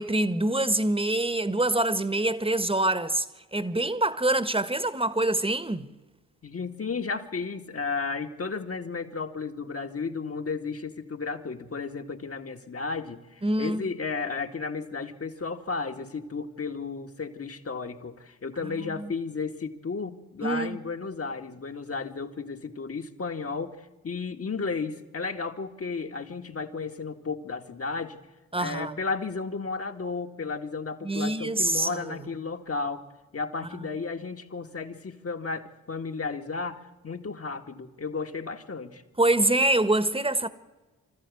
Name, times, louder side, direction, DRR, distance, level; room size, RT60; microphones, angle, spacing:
voice 1, 0.0-3.2 3.5-5.9 13.4-13.9 18.6-19.1 20.4-20.8 28.5-28.9 31.0-32.3 33.8-33.9 39.2-40.5, right 2 dB, 15° right, 1.5 m, -25 dB
voice 2, 6.4-28.2 28.6-33.1 33.3-39.0, left 4 dB, 40° left, 2.0 m, -33 dB
25.0 x 13.5 x 8.6 m
hypercardioid pair, 40°, 37 cm